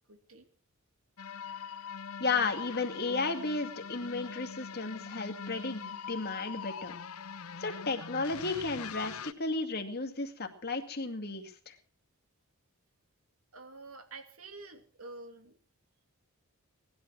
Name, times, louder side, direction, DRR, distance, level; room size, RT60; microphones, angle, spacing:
voice 1, 0.1-0.5 13.5-15.5, right 3 dB, 75° right, 7 dB, 2.9 m, -48 dB
sound 1, 1.2-9.3, left 6 dB, 85° left, 0.8 m, -43 dB
voice 2, 2.2-7.0 7.6-11.8, left 3 dB, 45° left, 5 dB, 2.3 m, -34 dB
19.0 x 11.5 x 6.1 m, 0.41 s
head